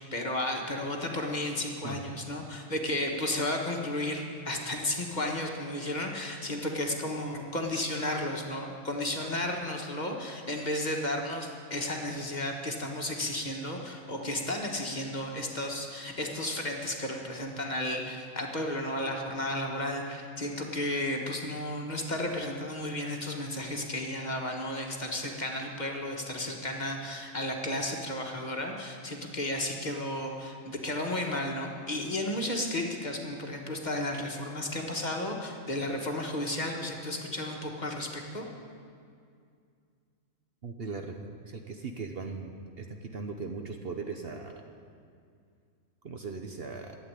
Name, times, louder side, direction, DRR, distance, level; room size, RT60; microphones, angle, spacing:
voice 1, 0.0-38.5, left 1 dB, 35° left, 1 dB, 1.4 m, -33 dB
voice 2, 40.6-44.6 46.0-47.0, right 4 dB, 50° right, 4 dB, 1.0 m, -39 dB
12.5 x 8.4 x 9.8 m, 2.3 s
omnidirectional pair, 1.4 m